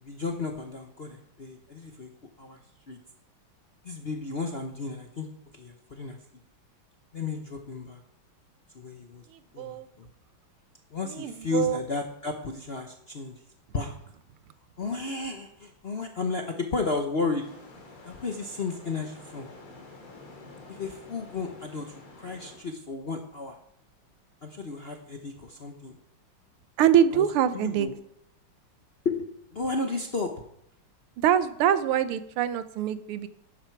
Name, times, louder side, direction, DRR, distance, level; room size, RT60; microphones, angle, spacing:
voice 1, 0.0-2.1 2.4-2.6 2.9-3.0 3.8-5.3 5.5-6.2 7.1-8.0 8.7-9.2 9.5-10.1 10.9-13.3 13.7-13.9 14.8-17.4 18.0-19.5 20.7-21.9 22.2-23.6 24.4-26.0 27.1-27.2 27.5-27.9 29.0-30.3, left 4 dB, 50° left, 4 dB, 0.7 m, -33 dB
voice 2, 9.6-9.9 11.0-11.8 26.8-27.9 31.2-33.3, right 9 dB, 90° right, 13 dB, 1.7 m, -24 dB
sound 1, 17.4-22.6, left 3 dB, 80° left, 3.4 m, -48 dB
12.0 x 10.5 x 4.6 m, 0.74 s
omnidirectional pair, 2.3 m